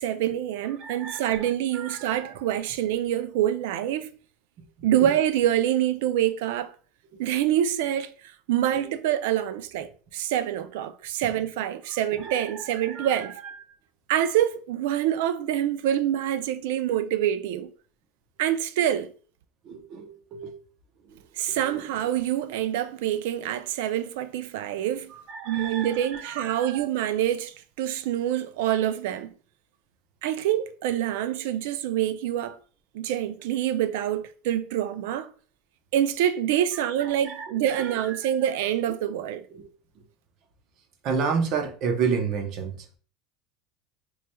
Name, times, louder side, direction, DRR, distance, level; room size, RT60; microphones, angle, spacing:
voice 1, 0.0-4.1 4.8-6.7 7.2-13.4 14.1-17.7 18.4-19.1 21.4-25.1 25.5-29.3 30.2-32.6 32.9-35.3 35.9-39.4, right 11 dB, 75° right, 0.4 m, -26 dB
voice 2, 0.8-2.3 5.0-5.1 7.1-7.2 8.7-8.8 11.9-13.6 19.6-20.5 21.1-21.2 21.5-21.7 25.3-26.9 37.0-38.3 39.2-39.6 41.0-43.0, right 5 dB, 40° right, 0.7 m, -32 dB
4.6 x 3.0 x 2.2 m
supercardioid pair, 160°, 0 cm